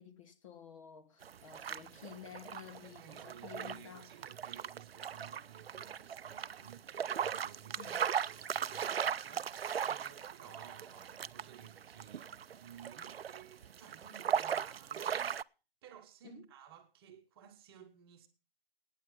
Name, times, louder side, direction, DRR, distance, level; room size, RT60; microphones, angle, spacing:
voice 1, 0.0-4.3 7.8-8.0 16.2-16.5, left 8 dB, 35° left, 1.3 m, -52 dB
sound 1, 1.2-15.4, right 8 dB, 80° right, 0.5 m, -38 dB
voice 2, 2.8-6.9 7.2-7.9 8.2-9.6 9.9-15.3 15.8-18.3, right 9 dB, 25° right, 1.3 m, -55 dB
14.0 x 9.6 x 5.7 m
hypercardioid pair, 150°, 30 cm